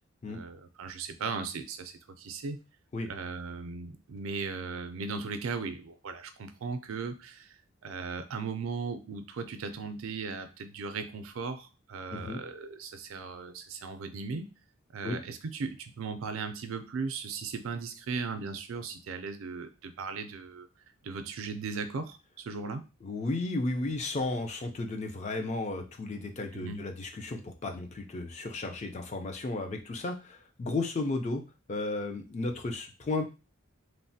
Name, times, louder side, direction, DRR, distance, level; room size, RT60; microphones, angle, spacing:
voice 1, 0.3-2.6 3.1-7.6 7.8-14.5 14.9-20.7 21.0-22.8 26.5-26.8, right 4 dB, 75° right, 9 dB, 0.4 m, -37 dB
voice 2, 12.1-12.4 15.0-15.2 23.0-31.4 31.7-33.2, left 2 dB, 35° left, 5 dB, 0.4 m, -34 dB
3.1 x 2.1 x 2.6 m, 0.29 s
head